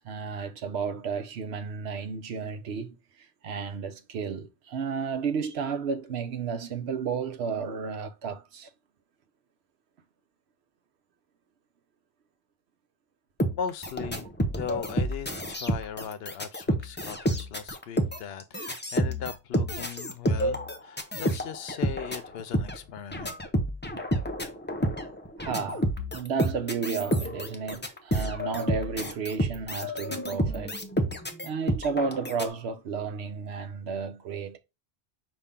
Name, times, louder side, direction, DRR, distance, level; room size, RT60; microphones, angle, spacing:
voice 1, 0.0-3.0 3.4-8.7 25.4-30.8 31.4-34.6, right 5 dB, 85° right, 1.0 m, -32 dB
sound 1, 13.4-32.5, equal, 15° left, 0.5 m, -29 dB
voice 2, 13.5-14.2 14.5-23.4, left 8 dB, 70° left, 0.8 m, -38 dB
5.5 x 2.7 x 3.6 m
omnidirectional pair, 1.1 m